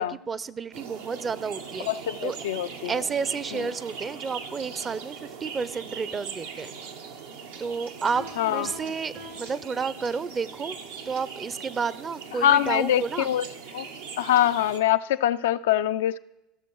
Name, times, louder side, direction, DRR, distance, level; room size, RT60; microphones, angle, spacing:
voice 1, 0.0-1.9 2.2-2.4 2.9-6.7 7.6-10.8 11.1-13.3, right 5 dB, 30° right, 0.5 m, -31 dB
sound 1, 0.7-14.8, right 6 dB, 80° right, 0.9 m, -40 dB
voice 2, 1.9-2.9 3.5-3.7 8.4-8.7 12.4-13.5 13.7-13.8 14.2-16.2, left 11 dB, 80° left, 0.3 m, -24 dB
Piano, 8.1-10.4, right 1 dB, 65° right, 2.6 m, -46 dB
15.5 x 6.4 x 4.6 m
hypercardioid pair, 80°, 0 cm